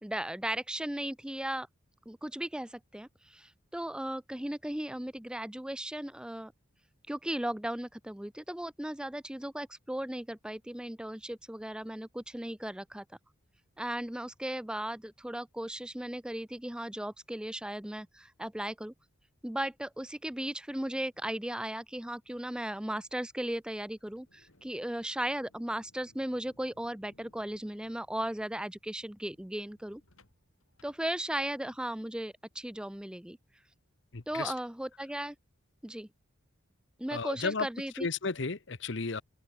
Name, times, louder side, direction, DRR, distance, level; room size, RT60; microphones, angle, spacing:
voice 1, 0.0-1.7 2.1-6.5 7.1-13.0 13.8-18.9 19.4-30.0 30.8-33.4 34.3-35.4 35.8-36.1 37.0-38.1, right 1 dB, 5° right, 0.4 m, -36 dB
sound 1, 24.0-31.7, left 1 dB, 85° left, 7.3 m, -67 dB
voice 2, 34.1-34.5 37.1-37.7 38.0-39.2, left 4 dB, 60° left, 0.9 m, -33 dB
head